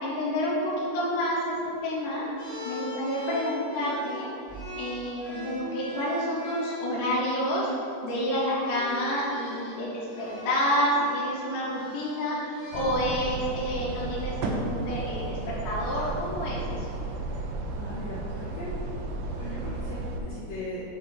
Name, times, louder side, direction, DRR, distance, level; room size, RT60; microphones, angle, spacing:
voice 1, 0.0-1.6 1.8-4.3 4.8-7.7 8.0-16.9, equal, 65° left, -8 dB, 2.3 m, -29 dB
sound 1, 2.4-6.9 7.9-8.1 8.6-13.4, left 2 dB, 40° left, 1.4 m, -41 dB
sound 2, 12.7-20.2, right 2 dB, 85° right, 2.7 m, -33 dB
voice 2, 17.8-18.8 19.4-20.8, left 1 dB, 80° left, -9 dB, 1.5 m, -38 dB
8.3 x 5.7 x 4.3 m, 2.7 s
omnidirectional pair, 4.9 m